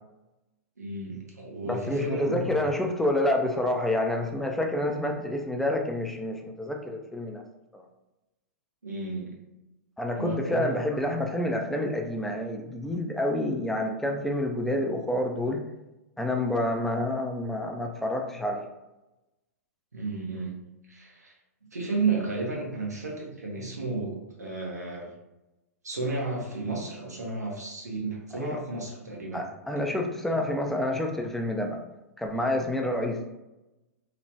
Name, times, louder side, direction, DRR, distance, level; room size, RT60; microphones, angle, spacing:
voice 1, 0.8-2.6 8.8-9.3 10.1-11.2 19.9-20.6 20.9-21.3 21.7-25.1 25.8-29.5 29.8-29.9, right 3 dB, 90° right, -2 dB, 0.8 m, -33 dB
voice 2, 1.7-7.4 7.7-7.8 10.0-15.6 16.2-18.6 28.3-28.6 29.3-31.8 32.2-33.2, left 1 dB, 5° left, 2 dB, 0.4 m, -28 dB
3.1 x 2.1 x 2.7 m, 0.97 s
hypercardioid pair, 110°, 9 cm